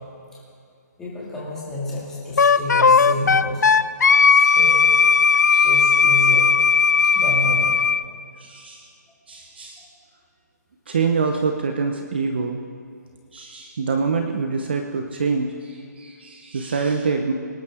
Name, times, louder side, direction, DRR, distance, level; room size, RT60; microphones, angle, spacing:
voice 1, 1.0-3.6 4.2-5.0 5.6-6.5 7.1-7.8, left 1 dB, 5° left, -7 dB, 2.2 m, -30 dB
Wind instrument woodwind instrument, 2.4-8.0, left 5 dB, 65° left, 0.5 m, -16 dB
voice 2, 8.4-8.9 9.3-9.9 10.9-12.6 13.3-17.3, right 5 dB, 35° right, 4 dB, 0.8 m, -25 dB
25.0 x 11.5 x 3.7 m, 2.3 s
hypercardioid pair, 180°, 10 cm